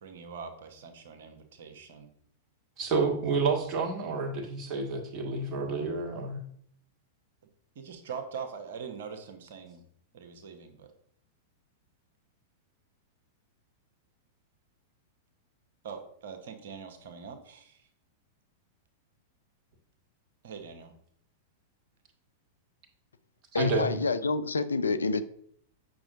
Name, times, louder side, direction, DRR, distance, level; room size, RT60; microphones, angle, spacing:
voice 1, 0.0-2.1 3.5-3.6 7.7-9.8 10.1-10.9 15.8-17.8 20.4-20.9, right 6 dB, 60° right, 6 dB, 1.1 m, -43 dB
voice 2, 2.8-6.4 23.5-24.0, right 3 dB, 35° right, 1 dB, 1.7 m, -29 dB
voice 3, 23.5-25.3, left 3 dB, 75° left, 13 dB, 0.4 m, -28 dB
8.5 x 6.0 x 2.6 m, 0.64 s
figure-of-eight pair, 95°, 0 cm